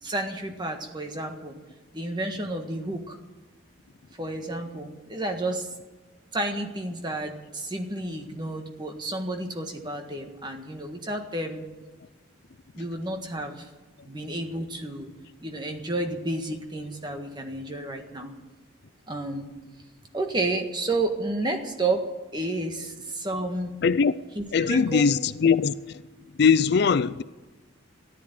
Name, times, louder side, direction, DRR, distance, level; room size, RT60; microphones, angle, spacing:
voice 1, 0.0-1.6 1.9-3.2 4.2-5.7 6.3-11.6 12.8-13.7 14.0-15.1 15.4-18.3 19.1-19.5 20.1-22.0 22.3-23.8 24.3-25.1, right 2 dB, 20° right, 1.6 m, -31 dB
voice 2, 23.8-24.1 24.5-25.7 26.4-27.2, left 5 dB, 55° left, 0.4 m, -21 dB
14.0 x 10.5 x 9.3 m
head